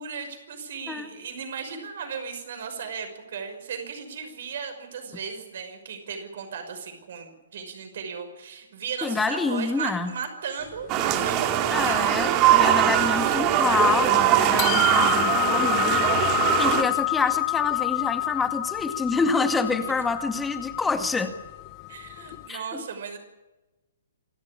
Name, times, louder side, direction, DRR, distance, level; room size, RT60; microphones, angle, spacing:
voice 1, 0.0-12.1 12.9-13.4 19.8-20.0 21.9-23.2, right 6 dB, 55° right, 6 dB, 5.8 m, -36 dB
voice 2, 9.0-10.1 11.7-21.3 22.5-22.8, left 4 dB, 10° left, 7 dB, 2.0 m, -27 dB
sound 1, 10.6-12.6 12.9-13.0 13.4-14.0 14.4-22.5, left 23 dB, 30° left, 0.7 m, -29 dB
sound 2, 10.9-16.8, right 11 dB, 30° right, 2.4 m, -21 dB
27.5 x 13.5 x 10.0 m, 1.1 s
figure-of-eight pair, 125°, 0 cm